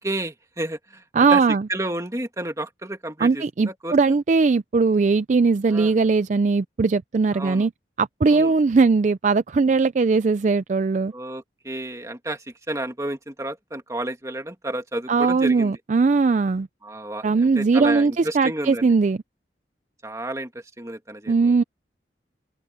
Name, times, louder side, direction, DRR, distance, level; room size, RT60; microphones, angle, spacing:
voice 1, 0.0-4.2 5.7-5.9 7.3-7.7 8.3-8.5 11.1-15.8 16.8-18.9 20.0-21.6, right 1 dB, 20° right, 2.4 m, -31 dB
voice 2, 1.1-1.6 3.2-7.7 8.0-11.1 15.1-16.7 17.2-19.2 21.3-21.6, right 4 dB, 40° right, 0.4 m, -19 dB
open air
head